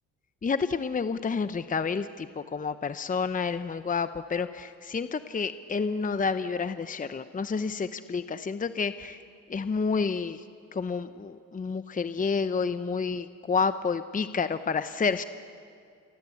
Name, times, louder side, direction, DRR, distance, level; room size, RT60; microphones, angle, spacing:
voice 1, 0.4-9.2 9.5-10.4 10.7-15.2, left 5 dB, 25° left, 11 dB, 0.8 m, -29 dB
28.5 x 23.5 x 8.6 m, 2.4 s
cardioid pair, 90°, 30 cm